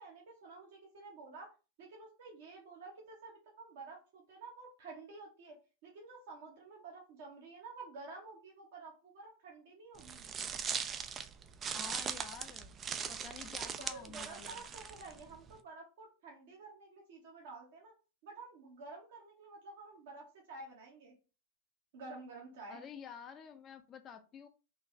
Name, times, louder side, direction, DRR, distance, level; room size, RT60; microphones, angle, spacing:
voice 1, 0.0-1.5 1.8-5.6 5.8-10.3 13.9-17.9 18.2-21.1 21.9-22.9, right 3 dB, 55° right, 0 dB, 1.3 m, -51 dB
sound 1, 10.0-15.5, right 7 dB, 25° right, 0.4 m, -40 dB
voice 2, 11.7-12.7 13.1-14.7 22.7-24.5, left 7 dB, 25° left, 7 dB, 0.5 m, -50 dB
4.1 x 3.1 x 3.2 m, 0.32 s
figure-of-eight pair, 90°, 0 cm